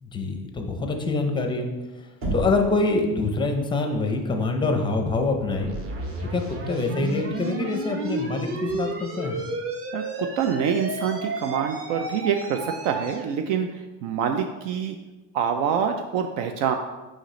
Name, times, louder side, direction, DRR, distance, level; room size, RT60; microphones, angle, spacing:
voice 1, 0.0-1.7 2.3-5.7 6.2-9.4, left 3 dB, 10° left, 4 dB, 0.5 m, -25 dB
Knock, 2.2-2.9, right 1 dB, 60° right, 2.1 m, -28 dB
sound 1, 5.5-13.3, right 2 dB, 35° right, 0.9 m, -32 dB
voice 2, 10.4-15.0 15.3-16.8, right 7 dB, 75° right, 5 dB, 0.6 m, -26 dB
6.4 x 5.1 x 3.2 m, 1.1 s
cardioid pair, 145°, 40 cm